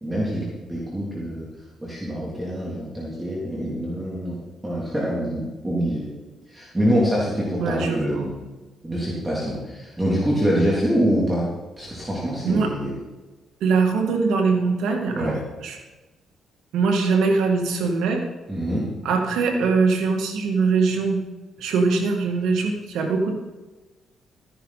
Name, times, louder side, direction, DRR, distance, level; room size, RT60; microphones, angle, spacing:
voice 1, 0.0-1.5 1.8-6.1 6.5-8.3 8.8-11.5 11.8-12.9 15.1-15.4 18.5-18.9, equal, 15° right, -5 dB, 3.0 m, -25 dB
voice 2, 7.6-8.3 12.4-12.7 13.6-15.4 15.6-15.8 16.7-18.2 19.0-21.2 21.6-23.3, right 4 dB, 85° right, 2 dB, 2.1 m, -22 dB
14.0 x 10.0 x 4.2 m, 1.2 s
cardioid pair, 90°, 0 cm